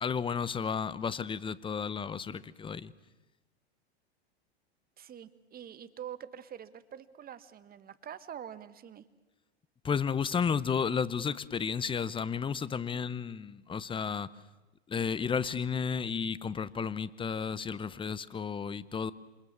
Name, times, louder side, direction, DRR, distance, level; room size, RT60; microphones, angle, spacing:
voice 1, 0.0-2.9 9.8-14.3 14.9-19.1, left 6 dB, 15° left, 18 dB, 0.9 m, -32 dB
voice 2, 5.0-9.0, right 9 dB, 30° right, 13 dB, 1.6 m, -45 dB
28.0 x 26.5 x 7.3 m, 1.1 s
hypercardioid pair, 100°, 32 cm